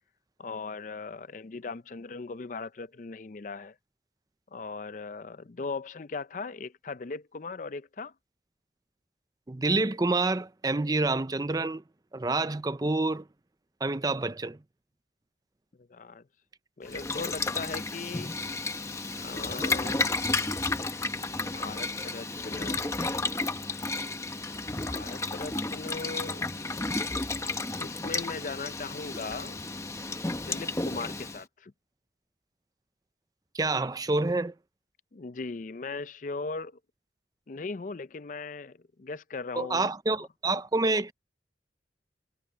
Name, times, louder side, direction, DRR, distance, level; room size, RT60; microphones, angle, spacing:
voice 1, 0.4-3.8 4.5-8.1 15.8-16.2 16.8-18.3 19.2-20.1 21.4-22.8 24.7-26.4 27.8-29.6 30.5-31.7 35.1-36.8 37.5-39.9, left 4 dB, 45° left, 0.5 m, -38 dB
voice 2, 9.5-11.8 12.1-13.2 13.8-14.6 33.5-34.5 39.6-41.1, right 2 dB, 20° right, 0.5 m, -27 dB
Boiling, 16.9-31.4, left 3 dB, 15° left, 0.8 m, -32 dB
head